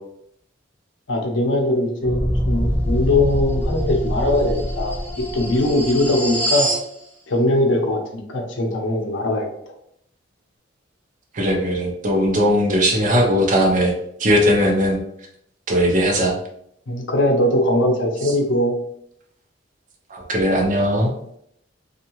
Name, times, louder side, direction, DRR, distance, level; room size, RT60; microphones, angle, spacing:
voice 1, 1.1-2.2 2.4-6.7 7.3-9.7 16.9-18.7, left 1 dB, 70° left, 2 dB, 0.6 m, -21 dB
sound 1, 2.0-6.9, equal, 10° left, 0.7 m, -24 dB
voice 2, 11.3-13.9 14.2-15.0 15.7-16.3 20.1-21.1, equal, 40° right, 0 dB, 0.6 m, -18 dB
2.7 x 2.3 x 2.9 m, 0.72 s
head